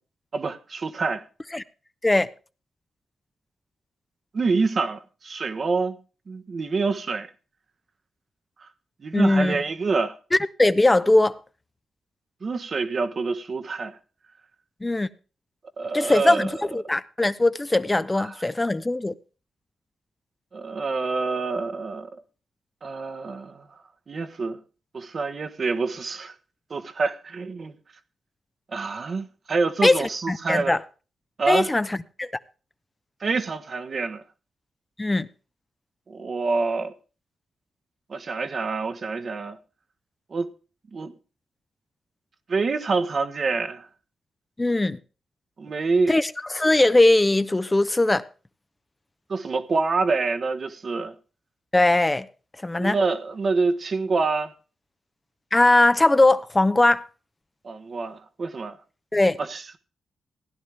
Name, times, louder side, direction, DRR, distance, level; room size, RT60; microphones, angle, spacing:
voice 1, 0.3-1.2 4.3-6.0 6.3-7.3 8.6-8.7 9.0-10.2 12.4-14.0 15.8-16.5 18.2-18.3 20.5-22.2 22.8-23.6 24.1-24.6 24.9-26.3 26.7-27.7 28.7-30.8 31.4-31.7 33.2-34.2 36.1-36.9 38.1-39.6 40.3-40.5 40.9-41.1 42.5-43.9 45.6-46.2 49.3-51.1 52.8-54.5 57.6-58.8 59.4-59.8, right 4 dB, 55° right, 1.1 m, -26 dB
voice 2, 9.1-9.6 10.6-11.3 14.8-15.1 15.9-19.1 29.8-30.8 31.5-32.3 35.0-35.3 44.6-45.0 46.1-48.2 51.7-52.3 52.6-53.0 55.5-57.0 59.1-59.4, left 2 dB, 20° left, 0.7 m, -20 dB
16.0 x 10.5 x 3.4 m
supercardioid pair, 45°, 0 cm